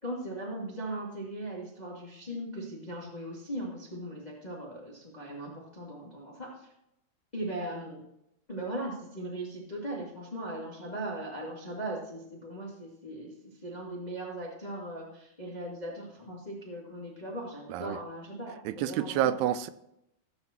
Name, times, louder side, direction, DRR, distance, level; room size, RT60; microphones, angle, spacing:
voice 1, 0.0-6.7 7.3-8.0 8.5-19.3, right 1 dB, 30° left, -3 dB, 0.7 m, -39 dB
voice 2, 18.7-19.7, right 11 dB, 85° right, 13 dB, 2.6 m, -29 dB
15.5 x 7.9 x 2.9 m, 0.80 s
omnidirectional pair, 4.6 m